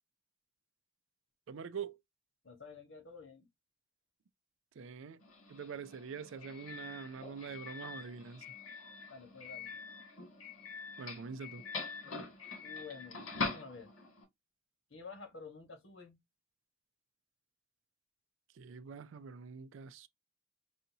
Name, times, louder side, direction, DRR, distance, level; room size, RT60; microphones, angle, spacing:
voice 1, 1.5-2.0 4.8-5.2 5.5-8.4 11.0-11.6 18.6-20.1, right 6 dB, 65° right, 0.4 m, -44 dB
voice 2, 2.4-3.5 9.1-9.7 12.6-13.9 14.9-16.2, left 4 dB, 65° left, 1.4 m, -50 dB
Doorbell, 5.2-14.2, left 4 dB, 85° left, 2.3 m, -44 dB
5.5 x 2.6 x 2.7 m
head